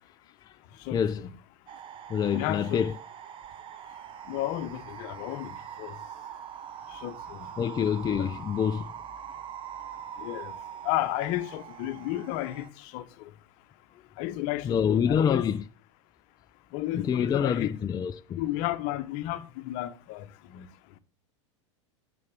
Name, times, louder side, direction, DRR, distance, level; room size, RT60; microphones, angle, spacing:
voice 1, 0.9-1.3 2.1-3.0 7.6-8.9 14.6-15.6 16.9-18.4, left 8 dB, 25° left, 0.6 m, -26 dB
sound 1, 1.7-12.7, right 9 dB, 30° right, 0.7 m, -43 dB
voice 2, 2.3-2.8 4.3-6.0 6.9-7.5 8.2-8.3 10.2-10.5 10.8-13.3 14.2-15.5 16.7-17.7 18.4-20.7, left 15 dB, 55° left, 1.0 m, -33 dB
7.1 x 6.4 x 7.2 m
hypercardioid pair, 100°, 16 cm